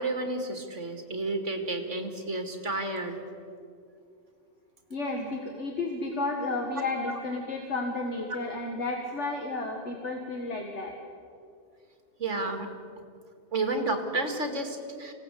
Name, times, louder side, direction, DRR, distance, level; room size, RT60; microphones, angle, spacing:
voice 1, 0.0-3.2 12.2-12.7 13.5-15.1, right 2 dB, 80° right, 5 dB, 2.7 m, -31 dB
voice 2, 4.9-10.9, left 2 dB, 70° left, 1 dB, 2.2 m, -32 dB
25.5 x 17.0 x 8.4 m, 2.4 s
omnidirectional pair, 1.2 m